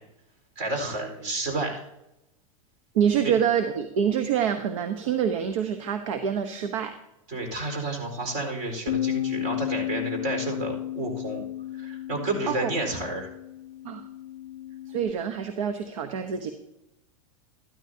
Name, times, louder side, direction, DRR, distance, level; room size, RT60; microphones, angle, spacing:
voice 1, 0.6-1.8 3.2-3.3 7.3-11.4 11.7-13.3, right 2 dB, 50° right, 4 dB, 4.3 m, -30 dB
voice 2, 2.9-6.9 12.5-12.7 13.8-14.0 14.9-16.5, right 8 dB, 65° right, 8 dB, 1.0 m, -26 dB
Bass guitar, 8.9-15.1, left 13 dB, 85° left, 0.5 m, -33 dB
13.5 x 12.5 x 2.8 m, 0.90 s
hypercardioid pair, 100°, 18 cm